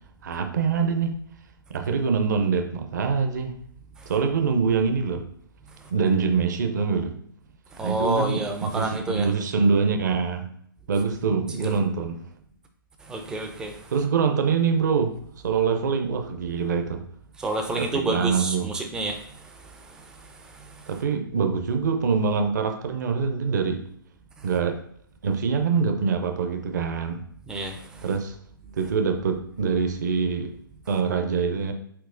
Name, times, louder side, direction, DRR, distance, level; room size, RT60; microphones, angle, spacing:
voice 1, 0.2-1.2 1.7-3.5 4.1-5.2 5.9-7.1 7.8-10.5 10.9-12.2 13.9-15.2 15.4-17.0 17.7-18.7 20.9-23.8 24.4-24.8 25.2-27.2 28.0-28.3 28.8-30.5 30.9-31.7, right 5 dB, 55° right, 6 dB, 0.6 m, -24 dB
voice 2, 7.8-9.3 11.6-11.7 13.1-13.7 17.4-19.2 27.5-27.7, right 2 dB, 5° right, 5 dB, 0.3 m, -28 dB
4.6 x 4.0 x 2.5 m, 0.67 s
figure-of-eight pair, 130°, 12 cm